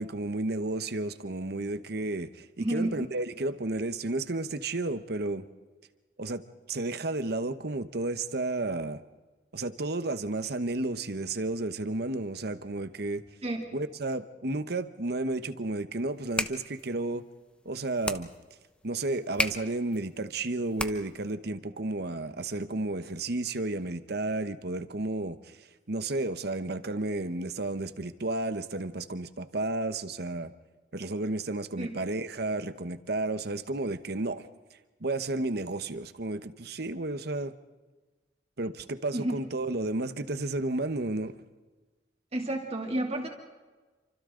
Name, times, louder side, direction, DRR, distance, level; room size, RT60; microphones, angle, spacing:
voice 1, 0.0-5.4 6.2-6.4 6.7-9.0 9.5-13.2 13.7-17.2 17.6-18.3 18.8-30.5 30.9-34.5 35.0-37.5 38.6-41.3, right 2 dB, 60° right, 11 dB, 1.1 m, -32 dB
voice 2, 2.6-3.0 13.4-13.7 31.8-32.0 39.1-39.3 42.3-43.3, right 1 dB, 35° right, 1 dB, 2.9 m, -30 dB
sound 1, 16.1-21.3, left 1 dB, 5° left, 0.9 m, -36 dB
28.5 x 25.5 x 3.9 m, 1.3 s
head